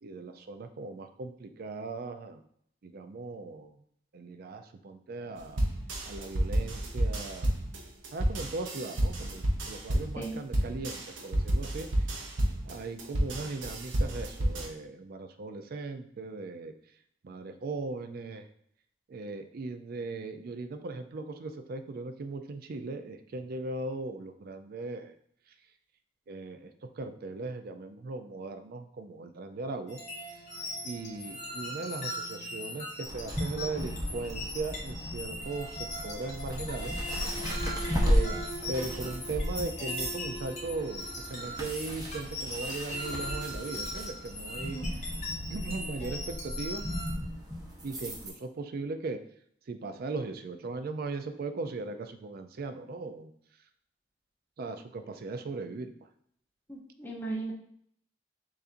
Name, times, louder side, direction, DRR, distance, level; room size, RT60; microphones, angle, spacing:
voice 1, 0.0-2.4 2.8-3.8 4.1-5.6 6.1-7.7 8.1-12.3 12.7-16.7 17.2-18.5 19.1-25.1 26.3-30.0 30.3-30.4 30.8-36.9 38.1-38.4 38.7-44.8 45.5-46.8 47.8-49.2 49.7-53.3 54.6-55.9, right 3 dB, 55° right, 8 dB, 0.4 m, -38 dB
sound 1, 5.6-14.7, right 1 dB, 75° right, 0.7 m, -30 dB
sound 2, 29.9-47.1, left 1 dB, 40° left, 1.2 m, -40 dB
sound 3, 33.0-48.3, equal, 20° right, 0.8 m, -35 dB
voice 2, 56.7-57.5, right 2 dB, 10° left, -3 dB, 0.7 m, -37 dB
6.8 x 2.6 x 2.5 m, 0.66 s
head